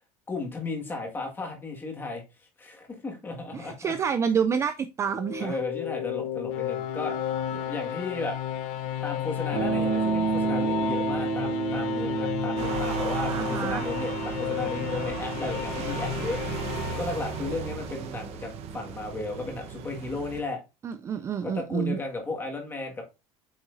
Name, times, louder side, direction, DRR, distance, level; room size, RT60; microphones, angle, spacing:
voice 1, 0.3-3.9 5.4-8.4 9.0-16.7 17.0-20.6 21.4-23.0, left 3 dB, 15° left, 1.8 m, -35 dB
voice 2, 3.5-5.6 13.3-13.9 20.8-22.0, right 7 dB, 20° right, 0.3 m, -28 dB
sound 1, 5.0-18.1, left 10 dB, 90° left, 1.0 m, -33 dB
sound 2, 9.5-19.6, right 4 dB, 85° right, 2.8 m, -32 dB
sound 3, 12.6-20.4, right 7 dB, 45° right, 1.0 m, -36 dB
8.6 x 5.9 x 2.6 m
cardioid pair, 170°, 14 cm